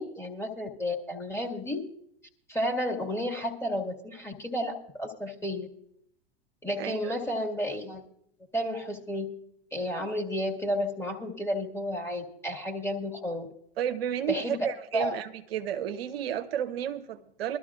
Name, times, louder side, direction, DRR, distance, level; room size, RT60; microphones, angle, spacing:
voice 1, 0.0-1.8 2.5-5.7 6.6-8.0 8.5-9.3 9.7-13.5 14.3-14.7 14.9-15.2, equal, 10° left, 0 dB, 2.1 m, -32 dB
voice 2, 6.8-7.1 13.8-17.6, right 10 dB, 65° right, 8 dB, 0.9 m, -32 dB
22.5 x 12.5 x 2.5 m, 0.72 s
hypercardioid pair, 100°, 32 cm